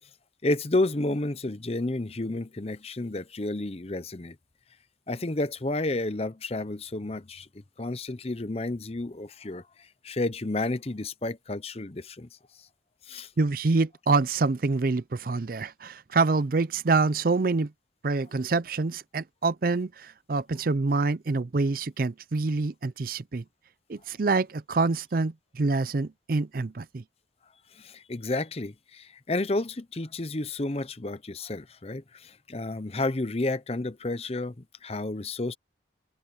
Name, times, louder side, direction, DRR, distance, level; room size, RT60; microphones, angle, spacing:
voice 1, 0.4-4.4 5.1-7.5 7.8-12.3 13.1-13.3 27.7-35.5, left 2 dB, 35° left, 0.7 m, -31 dB
voice 2, 13.4-17.7 18.0-23.4 23.9-27.0, right 3 dB, 50° right, 0.5 m, -26 dB
head